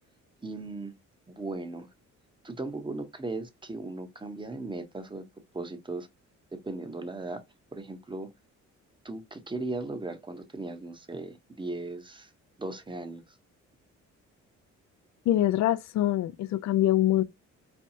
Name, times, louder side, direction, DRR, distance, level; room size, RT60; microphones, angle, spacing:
voice 1, 0.4-0.9 1.3-1.9 2.4-5.2 5.5-6.1 6.5-7.4 7.7-8.3 9.0-12.3 12.6-13.4, right 2 dB, 15° right, 0.9 m, -37 dB
voice 2, 15.3-17.2, left 13 dB, 65° left, 0.5 m, -24 dB
4.3 x 2.3 x 2.7 m
cardioid pair, 90°, 30 cm